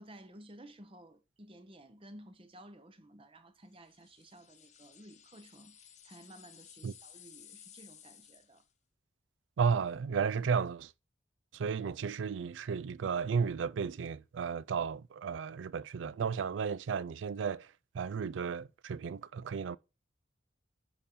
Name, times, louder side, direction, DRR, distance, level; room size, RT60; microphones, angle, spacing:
voice 1, 0.0-8.6, right 1 dB, 30° right, 0.8 m, -54 dB
sound 1, 3.9-8.7, left 9 dB, 40° left, 0.9 m, -57 dB
voice 2, 9.6-10.9 11.5-19.8, right 6 dB, 80° right, 0.4 m, -33 dB
10.5 x 3.8 x 4.2 m
head